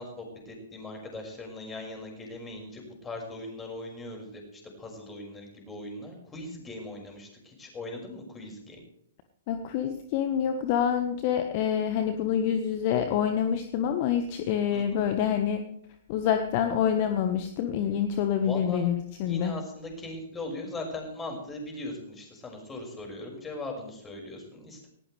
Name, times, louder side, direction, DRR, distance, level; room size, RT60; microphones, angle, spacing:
voice 1, 0.0-8.8 14.7-14.8 18.4-18.9 19.3-24.9, left 2 dB, 15° left, 1 dB, 5.9 m, -39 dB
voice 2, 9.5-15.6 16.1-19.5, left 8 dB, 40° left, 7 dB, 1.4 m, -27 dB
19.0 x 18.0 x 3.4 m, 0.74 s
figure-of-eight pair, 115°, 0 cm